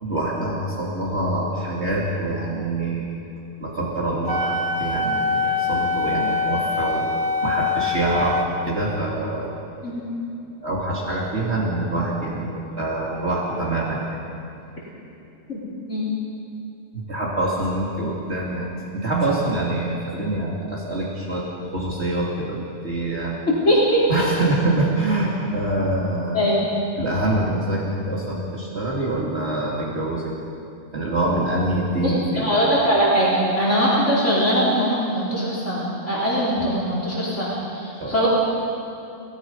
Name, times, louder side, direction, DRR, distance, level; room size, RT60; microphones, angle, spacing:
voice 1, 0.0-3.1 3.6-7.1 7.4-9.5 10.6-14.2 16.9-21.5 21.7-23.4 24.1-26.7 27.0-30.3 30.9-32.6 38.0-38.2, right 1 dB, 55° right, -4 dB, 3.1 m, -25 dB
Wind instrument woodwind instrument, 4.3-8.5, left 3 dB, 15° right, 1.1 m, -24 dB
voice 2, 23.7-24.1 26.3-26.6 32.0-38.3, equal, 70° left, -8 dB, 4.7 m, -21 dB
30.0 x 18.0 x 5.6 m, 2.8 s
omnidirectional pair, 1.3 m